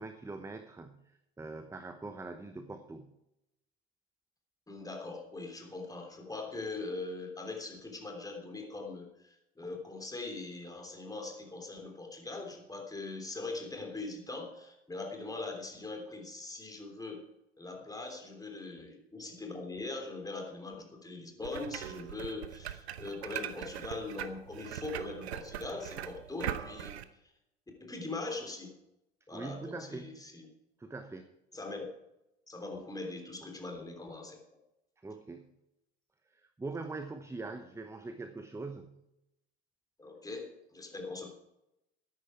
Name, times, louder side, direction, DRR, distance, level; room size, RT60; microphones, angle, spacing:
voice 1, 0.0-3.1 29.3-30.2 30.8-31.3 35.0-35.5 36.3-39.0, right 3 dB, 10° right, 9 dB, 0.9 m, -43 dB
voice 2, 4.7-17.2 17.6-27.0 27.8-28.7 29.3-30.5 31.5-31.9 32.5-34.4 40.0-41.3, left 3 dB, 10° left, 3 dB, 3.3 m, -41 dB
sound 1, 21.4-27.0, right 10 dB, 75° right, 0.9 m, -41 dB
13.5 x 10.0 x 4.8 m, 0.87 s
figure-of-eight pair, 75°, 33 cm